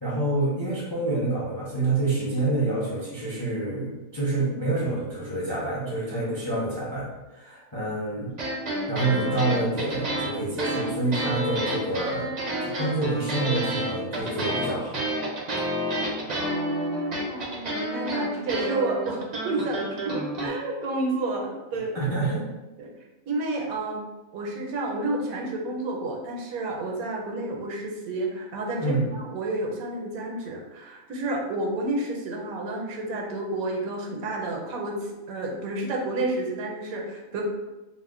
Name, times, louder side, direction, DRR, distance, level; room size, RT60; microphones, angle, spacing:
voice 1, 0.0-7.1 7.3-8.3 8.9-12.3 12.6-15.0 21.9-22.4 28.8-29.1, right 2 dB, 35° left, -7 dB, 0.4 m, -27 dB
sound 1, 8.3-20.5, right 1 dB, 55° right, 0.4 m, -29 dB
voice 2, 17.3-22.0 22.8-22.9 23.3-24.0 24.3-35.0 35.3-37.4, right 2 dB, 80° right, 0 dB, 1.0 m, -30 dB
2.7 x 2.0 x 3.6 m, 1.1 s
omnidirectional pair, 1.5 m